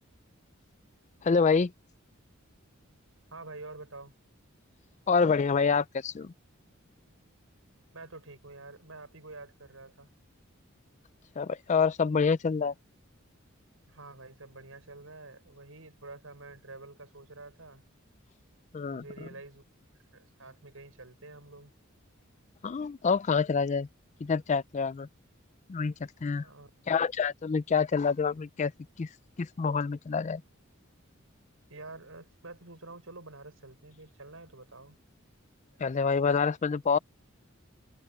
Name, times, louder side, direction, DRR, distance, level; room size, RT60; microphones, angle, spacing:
voice 1, 1.2-1.7 5.1-6.3 11.4-12.7 18.7-19.0 22.6-23.9 24.2-25.1 25.7-25.9 26.2-26.5 26.9-28.7 29.0-29.1 29.4-30.4 35.8-37.0, left 5 dB, 35° left, 0.4 m, -27 dB
voice 2, 3.3-4.1 7.9-10.1 13.9-17.8 18.8-19.6 20.1-21.7 26.4-26.7 31.7-35.0 35.7-35.8, right 2 dB, 80° right, 6.4 m, -48 dB
head